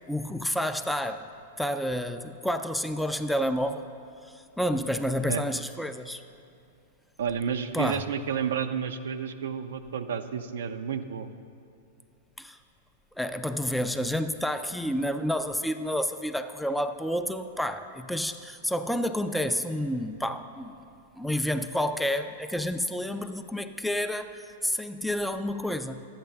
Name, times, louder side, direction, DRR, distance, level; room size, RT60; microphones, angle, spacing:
voice 1, 0.1-1.3 1.6-3.9 4.2-6.2 7.7-8.0 12.4-12.6 13.2-20.8 21.1-26.1, equal, ahead, 8 dB, 0.4 m, -29 dB
voice 2, 7.2-11.3, right 7 dB, 70° right, 9 dB, 0.5 m, -31 dB
12.0 x 8.8 x 3.4 m, 2.6 s
hypercardioid pair, 105°, 0 cm